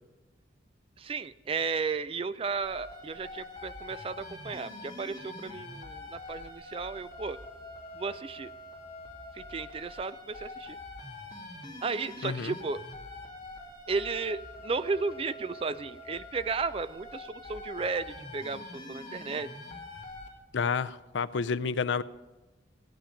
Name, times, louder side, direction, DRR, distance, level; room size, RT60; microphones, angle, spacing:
voice 1, 1.0-7.4 7.9-8.5 9.3-10.8 11.8-12.8 13.9-19.5, right 4 dB, 30° right, 14 dB, 0.4 m, -34 dB
sound 1, 2.6-20.3, left 2 dB, 25° left, 2.6 m, -45 dB
voice 2, 12.2-12.5 20.5-22.0, left 5 dB, 80° left, 13 dB, 0.5 m, -30 dB
17.0 x 10.0 x 5.1 m, 1.1 s
head